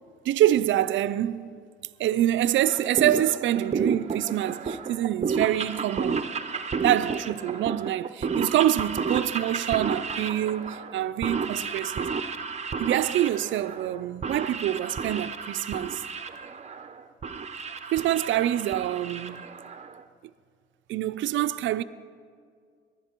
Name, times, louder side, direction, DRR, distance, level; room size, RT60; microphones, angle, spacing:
voice 1, 0.2-1.6 2.0-6.3 6.8-12.1 12.8-16.0 17.9-19.4 20.9-21.8, right 12 dB, 75° right, 0.5 m, -26 dB
sound 1, 2.6-20.0, right 5 dB, 35° right, 0.7 m, -32 dB
19.5 x 11.0 x 4.5 m
cardioid pair, 90°, 20 cm